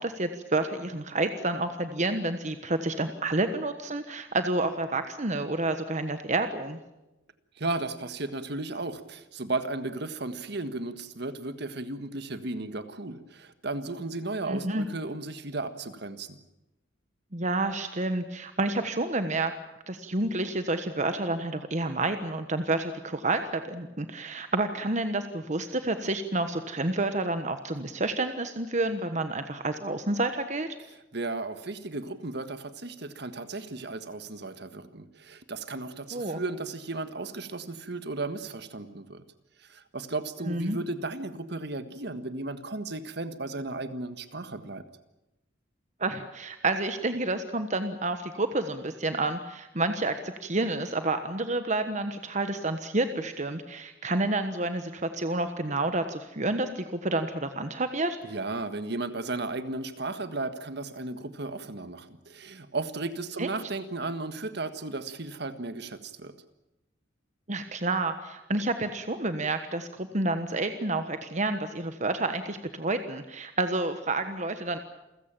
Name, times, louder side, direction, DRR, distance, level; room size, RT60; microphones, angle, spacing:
voice 1, 0.0-6.8 14.5-14.9 17.3-19.5 19.9-30.7 36.1-36.4 40.5-40.8 46.0-58.2 63.4-63.5 67.5-74.8, right 2 dB, 40° right, 9 dB, 1.3 m, -29 dB
voice 2, 7.6-16.4 31.1-39.2 39.6-44.8 58.2-66.3, right 2 dB, 60° right, 10 dB, 1.6 m, -35 dB
28.5 x 16.0 x 9.0 m, 0.95 s
head